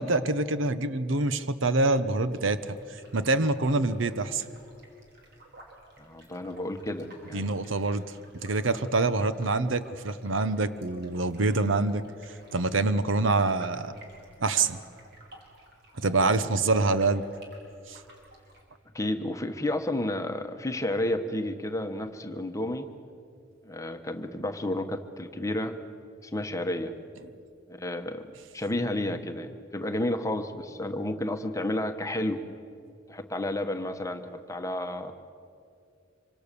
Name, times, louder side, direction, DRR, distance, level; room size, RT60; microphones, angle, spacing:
voice 1, 0.0-2.8 3.1-4.4 7.3-8.0 8.4-12.0 12.5-13.9 14.4-14.8 16.0-17.3 17.9-18.0, right 3 dB, 75° right, 12 dB, 0.9 m, -25 dB
sound 1, 2.3-18.6, right 1 dB, 60° right, 4.7 m, -55 dB
voice 2, 6.0-7.5 16.7-16.8 18.9-22.9 23.6-25.8 26.2-26.9 27.7-32.4 33.1-35.1, left 1 dB, 15° left, 6 dB, 1.2 m, -31 dB
26.0 x 25.0 x 6.9 m, 2.5 s
head